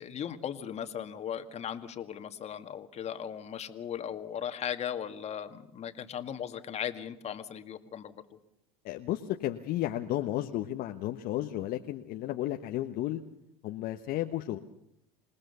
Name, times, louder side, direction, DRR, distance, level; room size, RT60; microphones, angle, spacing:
voice 1, 0.0-8.4, left 9 dB, 35° left, 8 dB, 2.0 m, -37 dB
voice 2, 8.8-13.2 13.6-14.6, left 14 dB, 50° left, 4 dB, 1.3 m, -33 dB
27.0 x 19.0 x 6.9 m, 0.77 s
hypercardioid pair, 95°, 19 cm